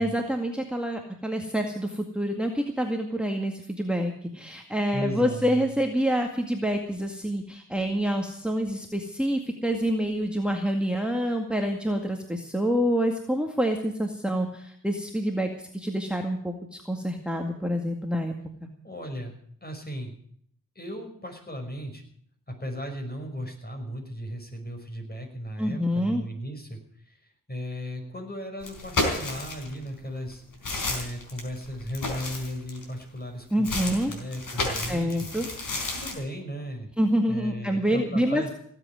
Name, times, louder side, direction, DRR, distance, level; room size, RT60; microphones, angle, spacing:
voice 1, 0.0-18.3 18.6-18.7 25.6-26.2 33.5-34.1 34.9-35.5 37.0-38.5, equal, 5° right, 3 dB, 2.1 m, -27 dB
voice 2, 4.9-5.7 18.8-20.2 20.8-22.1 22.5-30.4 30.9-35.2 35.9-36.9 37.3-38.5, equal, 30° left, 3 dB, 5.7 m, -36 dB
sound 1, 28.6-29.8 30.3-33.0 33.6-36.1, left 2 dB, 70° left, 4.4 m, -31 dB
17.5 x 8.2 x 9.6 m, 0.63 s
cardioid pair, 55°, 33 cm